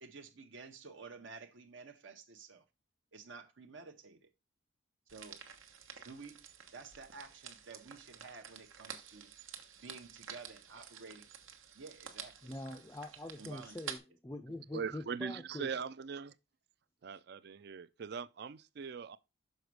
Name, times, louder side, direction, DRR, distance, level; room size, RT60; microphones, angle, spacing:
voice 1, 0.0-2.6 3.1-4.3 5.1-5.4 6.0-6.4 6.7-9.3 9.8-11.3 11.7-12.4 13.4-13.9, right 4 dB, 70° right, 0.9 m, -51 dB
sound 1, 5.1-14.0, right 8 dB, 85° right, 1.1 m, -50 dB
voice 2, 12.4-15.7, left 1 dB, 15° left, 0.4 m, -44 dB
voice 3, 14.7-16.3 17.0-19.2, right 6 dB, 55° right, 0.4 m, -41 dB
6.5 x 5.0 x 4.6 m
head